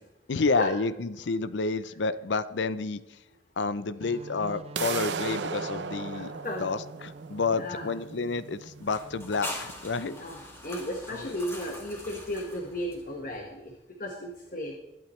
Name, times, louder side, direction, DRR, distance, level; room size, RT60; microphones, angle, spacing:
voice 1, 0.3-3.2 3.6-6.3 6.6-10.1 11.1-11.3, left 4 dB, 85° left, 15 dB, 0.6 m, -30 dB
sound 1, 4.0-9.5, right 3 dB, 35° right, 0.4 m, -45 dB
sound 2, 4.8-10.7, right 5 dB, 80° right, 0.7 m, -37 dB
voice 2, 6.1-6.6 7.5-7.9 10.1-10.4 10.6-13.7 14.0-14.8, left 1 dB, 50° left, 2 dB, 1.4 m, -35 dB
sound 3, 8.8-13.4, left 1 dB, 15° left, 2.1 m, -42 dB
21.5 x 9.0 x 3.2 m, 0.98 s
head